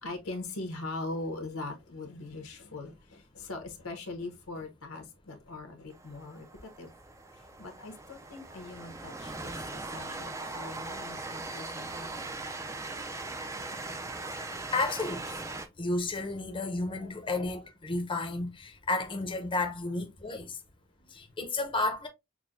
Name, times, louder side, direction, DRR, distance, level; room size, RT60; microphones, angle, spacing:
voice 1, 0.0-6.9 7.6-12.3, left 2 dB, 90° left, 1.0 m, -41 dB
Train, 5.9-15.7, right 3 dB, 15° right, 0.4 m, -40 dB
voice 2, 14.4-15.4 15.8-20.6 21.1-22.1, left 2 dB, 25° left, 0.6 m, -32 dB
6.0 x 2.2 x 2.5 m
head